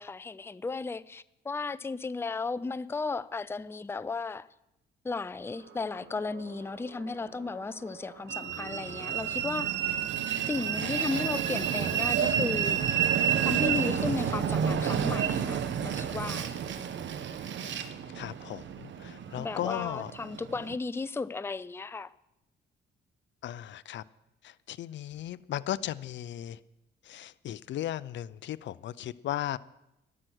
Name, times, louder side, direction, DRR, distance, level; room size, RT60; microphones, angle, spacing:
voice 1, 0.0-4.5 5.0-10.0 10.5-12.8 13.5-16.5 19.4-22.1, left 4 dB, 10° left, 16 dB, 0.5 m, -35 dB
sound 1, 5.4-15.2, right 7 dB, 85° right, 2.6 m, -51 dB
Train, 8.3-20.7, right 8 dB, 65° right, 1.2 m, -30 dB
voice 2, 18.1-20.1 23.4-24.0 24.4-26.6 27.0-29.6, left 12 dB, 65° left, 18 dB, 0.6 m, -36 dB
13.0 x 12.5 x 6.3 m, 0.87 s
cardioid pair, 90°, 20 cm